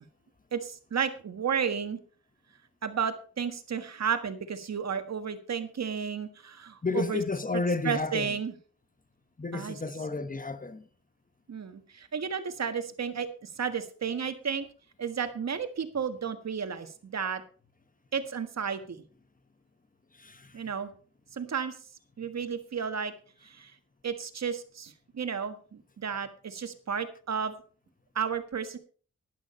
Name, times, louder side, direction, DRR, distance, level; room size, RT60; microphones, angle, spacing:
voice 1, 0.5-2.0 2.8-7.2 7.8-8.5 9.5-9.8 11.5-14.7 15.0-17.4 18.1-19.0 20.5-20.9 21.3-21.7 22.2-23.1 23.4-23.7 24.0-27.5 28.1-28.8, right 7 dB, 60° right, 1.6 m, -32 dB
voice 2, 6.8-8.4 9.4-10.9 20.1-20.6, left 3 dB, 25° left, 1.2 m, -32 dB
12.0 x 11.0 x 4.3 m
cardioid pair, 70°, 30 cm